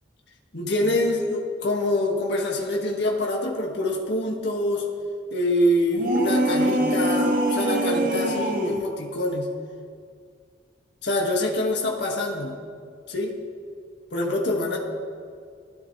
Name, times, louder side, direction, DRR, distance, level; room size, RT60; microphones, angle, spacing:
voice 1, 0.5-4.9 5.3-9.5 11.0-12.6 13.1-13.4 14.1-14.8, left 1 dB, 60° left, -2 dB, 2.0 m, -25 dB
sound 1, 5.9-8.9, right 1 dB, 45° right, 1.2 m, -24 dB
20.0 x 14.0 x 3.4 m, 2.2 s
head